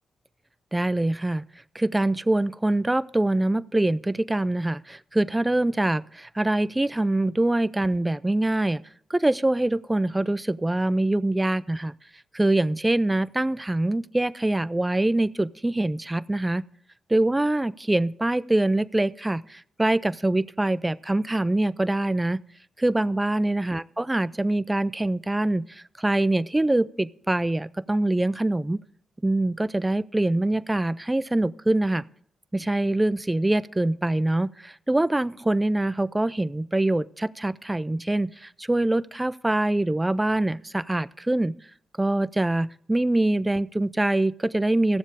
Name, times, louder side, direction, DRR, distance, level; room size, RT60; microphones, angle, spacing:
voice 1, 0.7-1.4 1.7-8.8 9.1-11.9 12.3-16.6 17.1-22.4 22.8-28.8 29.2-32.0 32.5-41.5 42.0-45.0, right 1 dB, 15° right, 17 dB, 0.5 m, -24 dB
15.0 x 7.2 x 4.9 m, 0.64 s
hypercardioid pair, 40°, 0 cm